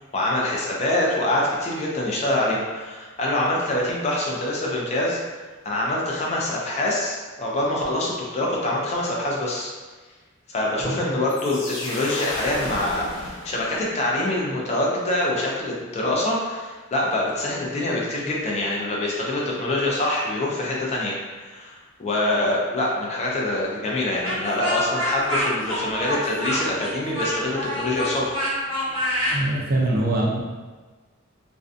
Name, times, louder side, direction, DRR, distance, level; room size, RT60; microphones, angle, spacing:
voice 1, 0.1-5.2 5.6-9.7 10.5-28.3, left 1 dB, 30° left, -3 dB, 0.4 m, -25 dB
sound 1, 11.3-14.1, left 1 dB, 85° left, 0.6 m, -33 dB
Speech, 24.2-29.4, equal, 25° right, 1.3 m, -26 dB
voice 2, 29.3-30.4, right 1 dB, 45° right, -3 dB, 0.4 m, -23 dB
2.5 x 2.2 x 2.5 m, 1.3 s
head